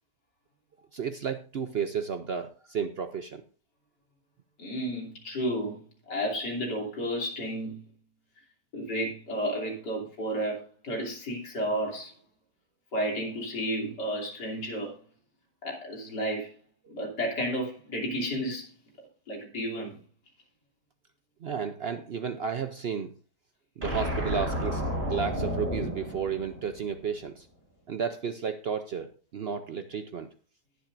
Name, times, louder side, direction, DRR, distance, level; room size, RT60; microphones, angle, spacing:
voice 1, 0.9-3.4 16.9-17.0 21.4-23.1 23.8-24.8 25.1-27.5 27.9-30.3, right 7 dB, 70° right, 0.5 m, -32 dB
voice 2, 4.6-5.8 6.1-7.8 8.7-12.1 12.9-15.0 15.6-16.5 16.9-18.7 19.3-20.0, equal, 80° left, 3.6 m, -32 dB
sound 1, 23.8-27.1, equal, 40° right, 6.2 m, -32 dB
20.0 x 7.4 x 2.6 m
omnidirectional pair, 1.8 m